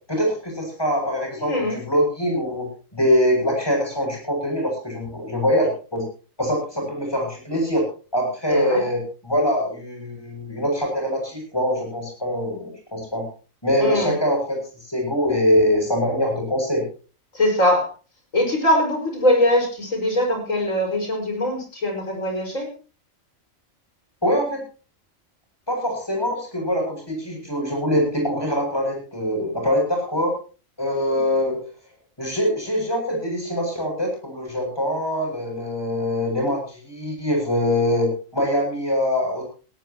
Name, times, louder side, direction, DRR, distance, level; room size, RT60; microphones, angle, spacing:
voice 1, 0.1-6.0 6.4-7.8 8.1-13.3 13.6-16.8 24.2-24.6 25.7-30.3 30.8-31.6 32.2-39.4, equal, 20° left, 1 dB, 7.6 m, -23 dB
voice 2, 1.4-1.8 8.5-8.8 13.8-14.1 17.3-17.9 18.3-22.7 31.1-31.2, left 1 dB, 85° left, 2 dB, 5.8 m, -22 dB
18.0 x 17.5 x 3.0 m, 0.36 s
omnidirectional pair, 1.3 m